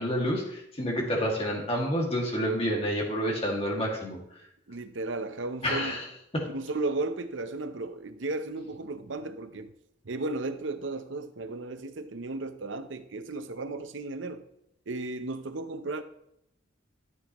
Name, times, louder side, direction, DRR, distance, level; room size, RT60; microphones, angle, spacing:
voice 1, 0.0-4.2 5.6-6.1 6.3-6.5, equal, 30° left, 2.2 m, -29 dB
voice 2, 4.7-6.0 6.5-9.7 10.0-14.4 14.9-16.0, right 2 dB, 75° right, 0.8 m, -34 dB
13.5 x 7.9 x 3.1 m
head